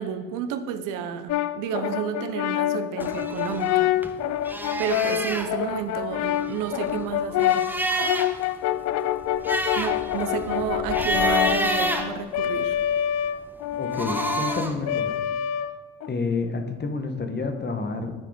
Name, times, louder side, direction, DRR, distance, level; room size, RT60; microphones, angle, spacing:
voice 1, 0.0-3.9 4.8-7.7 9.8-12.8, right 8 dB, 70° right, 9 dB, 0.8 m, -31 dB
Brass instrument, 1.3-16.1, left 12 dB, 55° left, 0.4 m, -27 dB
sound 1, 3.0-4.1 4.4-5.5 6.3-8.4 8.8-8.9 9.2-12.8 13.7-14.8, right 1 dB, 5° right, 1.1 m, -29 dB
voice 2, 13.8-15.2 16.1-18.1, left 3 dB, 30° left, 6 dB, 1.3 m, -29 dB
9.2 x 4.9 x 5.0 m, 1.4 s
hypercardioid pair, 60°, 33 cm